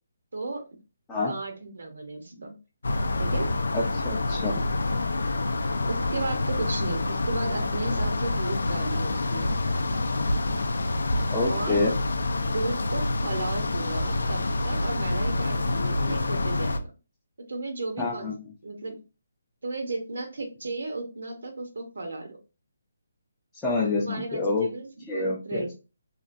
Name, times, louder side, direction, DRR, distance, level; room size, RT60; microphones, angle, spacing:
voice 1, 0.3-0.6 1.2-2.6 3.2-3.5 5.9-9.5 11.5-11.9 12.5-16.9 17.5-18.3 18.6-19.0 19.6-22.4 24.0-25.7, right 2 dB, 80° right, 3 dB, 0.9 m, -34 dB
sound 1, 2.8-16.8, left 2 dB, 85° left, 0.4 m, -27 dB
voice 2, 3.7-4.6 11.3-11.9 18.0-18.3 23.6-24.7 25.1-25.6, left 3 dB, 10° left, -6 dB, 0.5 m, -27 dB
3.0 x 2.4 x 2.5 m, 0.31 s
hypercardioid pair, 165°, 0 cm